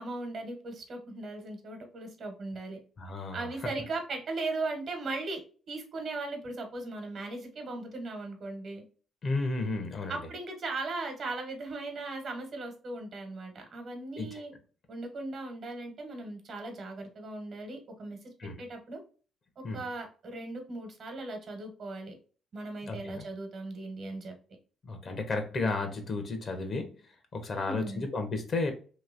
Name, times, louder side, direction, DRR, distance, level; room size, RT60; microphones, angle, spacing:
voice 1, 0.0-2.8 3.3-5.4 5.7-8.8 10.1-14.5 14.9-19.0 19.6-22.1 22.5-24.3 27.6-28.1, right 2 dB, 55° right, 4 dB, 1.2 m, -38 dB
voice 2, 3.0-3.7 9.2-10.3 14.2-14.4 18.4-18.6 19.6-19.9 22.8-23.2 24.8-26.9 27.3-28.7, left 3 dB, 45° left, 6 dB, 1.0 m, -33 dB
3.1 x 2.8 x 2.5 m, 0.37 s
cardioid pair, 90°, 0 cm